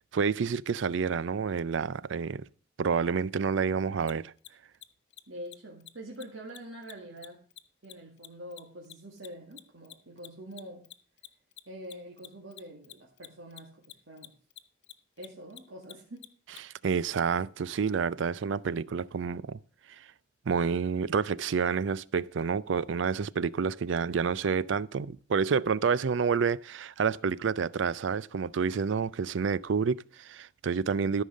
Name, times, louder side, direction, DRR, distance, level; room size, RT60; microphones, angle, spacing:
voice 1, 0.1-2.4 2.8-4.3 16.6-19.6 20.0-20.1 20.5-31.2, right 5 dB, 70° right, 0.4 m, -29 dB
Mechanisms, 4.0-4.1 4.4-4.5 4.7-4.9 5.1-5.2 5.5-5.6 5.8-5.9 6.1-6.2 6.5-9.3 9.5-16.6, left 14 dB, 60° left, 0.7 m, -48 dB
voice 2, 5.3-7.4 7.8-10.9 11.7-14.3 15.2-16.3, right 1 dB, 90° right, 2.1 m, -45 dB
13.5 x 5.5 x 6.4 m
head